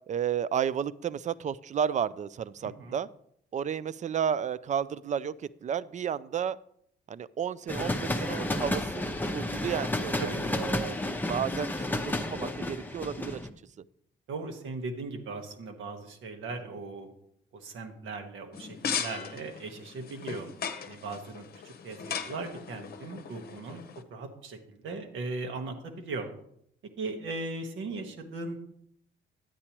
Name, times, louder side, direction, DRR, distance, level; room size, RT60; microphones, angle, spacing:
voice 1, 0.1-3.1 3.5-6.6 7.1-11.0 11.3-13.4, right 8 dB, 40° right, 19 dB, 0.4 m, -32 dB
voice 2, 2.6-2.9 10.2-10.4 14.3-17.1 17.5-20.5 20.8-23.8 24.1-26.3 27.0-28.6, right 3 dB, 75° right, 4 dB, 1.4 m, -38 dB
sound 1, 7.7-13.5, left 1 dB, 10° left, 0.7 m, -31 dB
sound 2, 18.5-24.0, left 7 dB, 50° left, 0.8 m, -38 dB
9.8 x 8.3 x 3.0 m, 0.70 s
cardioid pair, 90°, 20 cm